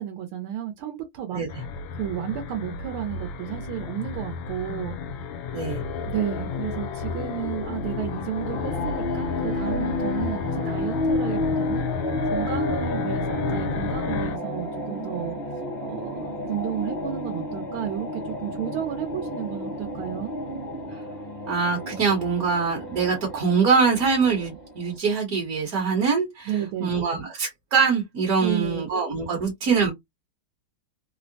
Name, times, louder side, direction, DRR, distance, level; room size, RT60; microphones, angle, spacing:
voice 1, 0.0-1.4 1.9-5.0 6.1-11.9 12.2-15.4 15.8-20.4 26.5-27.0 28.4-28.9, right 10 dB, 85° right, 1.5 m, -32 dB
sound 1, 1.5-14.4, left 5 dB, 75° left, 1.3 m, -31 dB
sound 2, 8.4-24.9, left 1 dB, 35° left, 0.7 m, -31 dB
voice 2, 21.5-26.5 26.8-29.9, right 5 dB, 55° right, 1.2 m, -23 dB
3.6 x 2.0 x 2.6 m
omnidirectional pair, 2.3 m